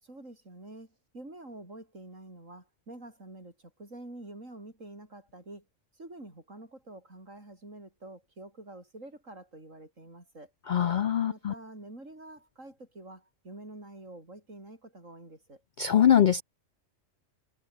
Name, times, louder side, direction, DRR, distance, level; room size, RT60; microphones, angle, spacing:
voice 1, 0.0-5.6 6.0-10.5 11.3-15.6, right 1 dB, 90° right, 7.6 m, -47 dB
voice 2, 10.7-11.5 15.8-16.4, left 9 dB, 65° left, 0.4 m, -23 dB
omnidirectional pair, 1.3 m